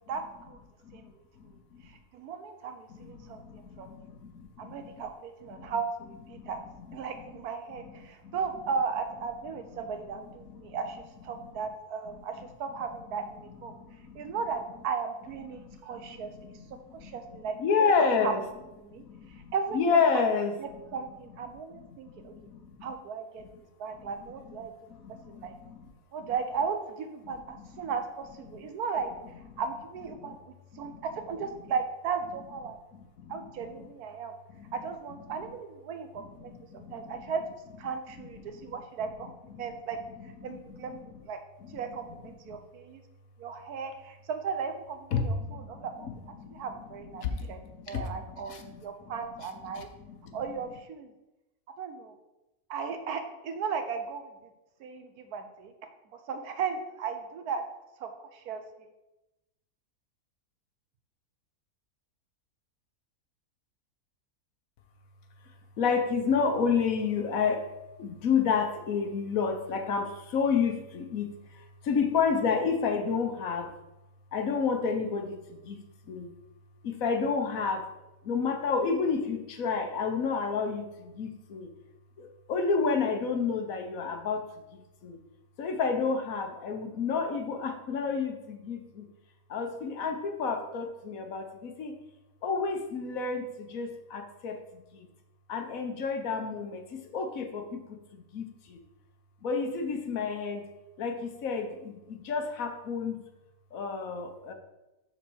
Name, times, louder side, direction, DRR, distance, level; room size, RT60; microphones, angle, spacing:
voice 1, 0.1-0.6 0.9-1.1 1.8-4.0 4.6-6.6 6.9-13.7 14.1-16.3 16.7-17.6 18.0-18.3 18.8-19.0 19.3-20.3 20.6-22.3 22.8-24.7 25.3-25.5 26.1-29.1 29.6-32.8 33.3-34.3 34.7-37.4 37.8-40.0 40.2-41.4 41.7-43.0 43.4-46.1 46.5-47.6 47.9-49.9 50.3-51.1 51.8-52.2 52.7-54.3 54.8-55.7 56.1-57.6 58.0-58.9, right 5 dB, 85° right, 7 dB, 1.3 m, -36 dB
voice 2, 3.0-4.9 5.5-5.7 6.3-6.5 7.8-8.4 10.5-10.8 13.7-14.3 15.5-17.2 17.6-18.4 18.9-20.8 21.7-22.9 24.0-24.1 25.0-25.8 27.8-27.9 28.5-28.6 30.2-30.3 30.7-31.1 33.2-33.3 34.6-34.7 35.3-35.4 36.1-37.2 38.4-38.8 39.5-39.8 40.5-41.2 41.6-41.8 42.5-42.6 45.1-45.9 46.4-46.6 47.2-47.5 47.7-48.8 49.7-50.4 65.8-67.7 68.0-73.7 74.3-76.3 76.8-77.9 78.2-81.7 82.2-84.5 84.7-85.2 85.6-89.1 89.5-92.0 92.4-95.1 95.5-98.8 99.4-100.7 101.0-103.2 103.7-104.5, left 5 dB, 65° left, 6 dB, 1.3 m, -31 dB
5.9 x 4.2 x 6.2 m, 0.96 s
omnidirectional pair, 1.6 m